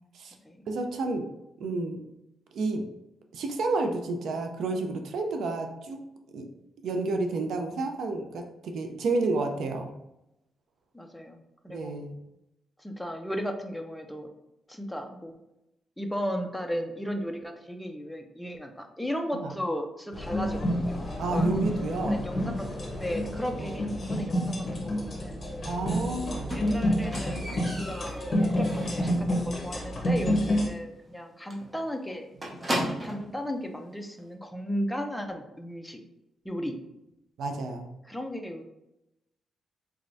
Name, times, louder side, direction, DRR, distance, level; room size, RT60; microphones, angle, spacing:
voice 1, 0.7-1.3 1.6-2.0 2.5-2.9 3.3-6.0 6.3-6.5 6.8-9.9 11.7-12.2 19.3-19.5 21.2-22.2 23.6-23.8 25.6-26.5 37.4-37.9, right 3 dB, 75° right, 4 dB, 0.4 m, -30 dB
voice 2, 10.9-11.4 11.6-12.0 12.8-14.3 14.7-15.3 16.0-21.5 21.8-25.5 26.5-28.2 28.6-32.3 33.0-36.0 36.4-36.8 38.0-38.6, equal, 5° left, 4 dB, 0.5 m, -35 dB
sound 1, 20.1-30.7, equal, 40° left, 0.9 m, -29 dB
Squeak, 26.5-29.3 29.6-30.0 30.3-30.4 30.8-30.9 31.1-31.3 31.5-33.3 34.2-34.3, equal, 25° right, 0.8 m, -35 dB
3.4 x 3.2 x 2.6 m, 0.89 s
cardioid pair, 105°, 0 cm